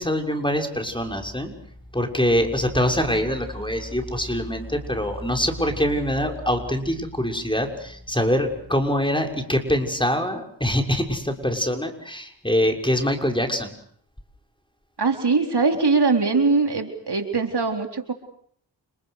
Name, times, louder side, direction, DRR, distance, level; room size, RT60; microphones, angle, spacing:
voice 1, 0.0-1.5 1.9-13.7, equal, 10° left, 4 dB, 6.4 m, -24 dB
sound 1, 0.8-9.4, left 1 dB, 10° right, 5.8 m, -40 dB
voice 2, 15.0-18.1, right 4 dB, 60° right, 5 dB, 4.1 m, -21 dB
30.0 x 28.5 x 6.7 m, 0.63 s
cardioid pair, 40°, 45 cm